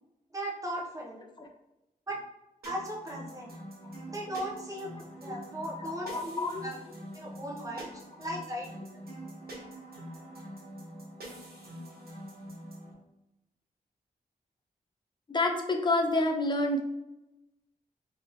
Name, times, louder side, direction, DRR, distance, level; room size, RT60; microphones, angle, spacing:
voice 1, 0.3-1.2 2.1-2.2 2.6-3.5 4.1-4.9 5.2-6.8 7.1-7.9 8.2-8.8, equal, 20° right, -2 dB, 1.0 m, -37 dB
sound 1, 2.6-12.9, equal, 80° right, 1.3 m, -45 dB
voice 2, 5.8-6.6 15.3-16.8, left 2 dB, 30° left, 3 dB, 0.6 m, -28 dB
3.6 x 2.8 x 3.5 m, 0.95 s
wide cardioid pair, 125°, 16 cm